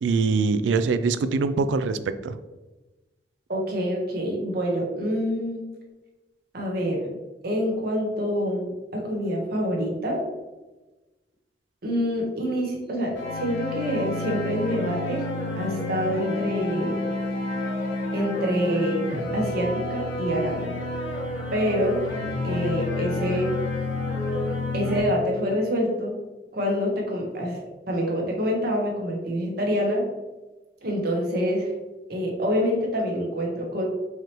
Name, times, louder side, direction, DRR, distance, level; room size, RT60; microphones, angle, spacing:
voice 1, 0.0-2.4, right 4 dB, 85° right, 12 dB, 0.3 m, -23 dB
voice 2, 3.5-5.6 6.5-7.1 7.4-10.2 11.8-15.3 15.6-17.0 18.1-19.1 19.3-20.8 21.5-22.0 22.4-23.5 24.7-26.1 26.5-30.0 30.8-31.7 32.1-33.9, equal, 60° right, -1 dB, 1.0 m, -26 dB
sound 1, 13.1-25.0, left 2 dB, 85° left, 1.4 m, -29 dB
4.7 x 3.0 x 2.9 m, 1.1 s
head